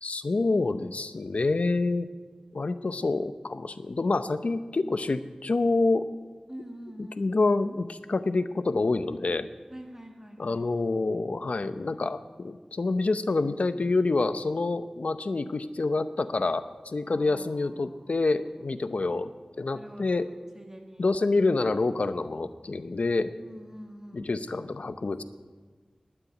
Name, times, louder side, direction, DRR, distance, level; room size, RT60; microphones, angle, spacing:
voice 1, 0.0-2.1 2.5-6.1 7.2-9.5 10.4-19.3 19.6-20.3 21.0-23.3 24.1-25.2, left 3 dB, 70° left, 11 dB, 0.7 m, -27 dB
voice 2, 6.5-7.3 9.7-10.7 17.1-18.3 19.7-21.1 23.4-24.3, right 1 dB, 20° right, 3 dB, 2.1 m, -46 dB
12.0 x 8.9 x 9.4 m, 1.4 s
wide cardioid pair, 70°, 2 cm